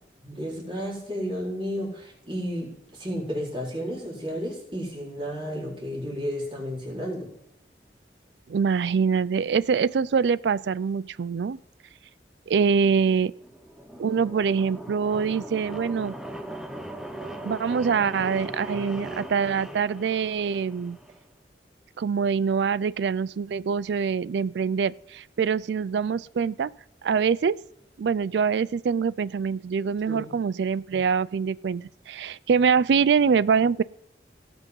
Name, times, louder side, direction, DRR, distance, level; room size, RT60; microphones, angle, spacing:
voice 1, 0.2-7.3 30.1-30.3, equal, 30° right, 4.5 m, -32 dB
voice 2, 8.5-11.6 12.5-13.3 14.0-16.2 17.4-21.0 22.0-26.7 27.0-27.6 28.0-33.8, right 6 dB, 80° right, 0.4 m, -24 dB
sound 1, 13.3-21.2, right 1 dB, 5° right, 0.9 m, -39 dB
18.0 x 6.0 x 5.5 m
head